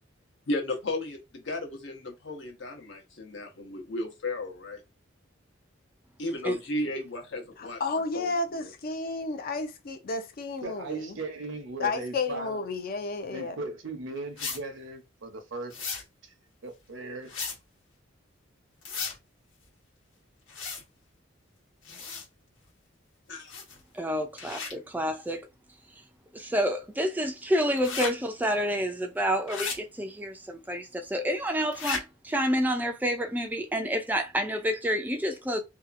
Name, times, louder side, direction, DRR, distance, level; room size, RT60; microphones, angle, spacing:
voice 1, 0.5-4.8 6.2-7.8 8.1-8.3 23.3-23.5, left 2 dB, 65° left, 0.9 m, -34 dB
voice 2, 7.6-11.2 11.8-13.6, left 3 dB, 50° left, 0.5 m, -32 dB
voice 3, 10.6-12.7 13.3-15.9 16.2-16.3 16.6-17.5, right 3 dB, 75° right, 0.7 m, -38 dB
sound 1, 14.4-14.6 15.7-16.0 17.3-17.6 18.8-19.2 20.5-20.8 21.8-22.3 23.5-23.8 24.4-24.7 27.8-28.1 29.5-29.8 31.7-32.0, left 5 dB, 85° left, 1.1 m, -34 dB
voice 4, 23.9-25.5 26.3-35.6, equal, 10° right, 0.4 m, -29 dB
2.8 x 2.3 x 2.5 m
head